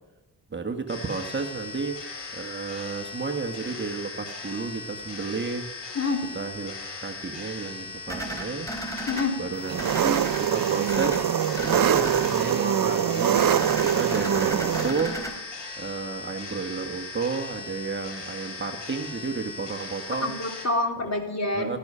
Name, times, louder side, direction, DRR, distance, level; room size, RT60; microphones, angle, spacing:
voice 1, 0.5-2.1 2.3-5.7 6.3-6.8 7.0-8.7 9.4-13.4 13.8-15.2 15.8-20.4 21.6-21.8, right 4 dB, 25° right, 4 dB, 1.3 m, -32 dB
sound 1, 0.9-20.7, left 3 dB, 80° left, 7.0 m, -39 dB
sound 2, 8.1-9.2 9.8-10.4 10.9-11.2 11.5-12.3 13.4-15.3, right 1 dB, 10° left, 4.2 m, -34 dB
voice 2, 9.1-9.4 20.2-21.8, left 2 dB, 35° left, 3 dB, 3.0 m, -27 dB
Engine, 9.6-14.9, right 9 dB, 50° right, 0.6 m, -24 dB
16.0 x 14.0 x 5.6 m, 1.1 s
cardioid pair, 100°, 43 cm